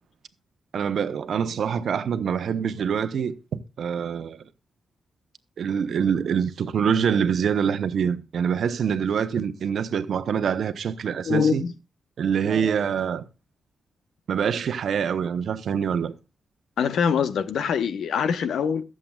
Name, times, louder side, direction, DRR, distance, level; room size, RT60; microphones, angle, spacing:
voice 1, 0.7-3.3 3.8-4.4 5.6-11.6 12.2-13.2 14.3-16.1, right 7 dB, 60° right, 0.9 m, -25 dB
voice 2, 11.2-11.7 16.8-18.8, left 6 dB, 75° left, 0.9 m, -24 dB
22.0 x 7.6 x 2.4 m
wide cardioid pair, 130°, 0 cm